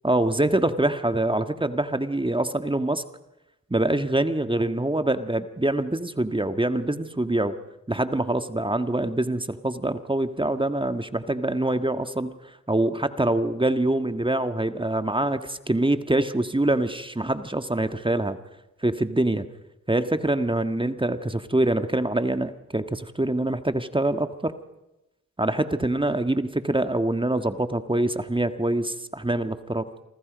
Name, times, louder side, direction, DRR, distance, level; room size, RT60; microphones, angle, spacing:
voice 1, 0.0-3.0 3.7-7.6 7.9-12.3 12.7-18.4 18.8-19.5 19.9-24.6 25.4-29.9, right 1 dB, 15° right, 9 dB, 1.7 m, -25 dB
28.0 x 25.5 x 5.3 m, 0.93 s
supercardioid pair, 40°, 32 cm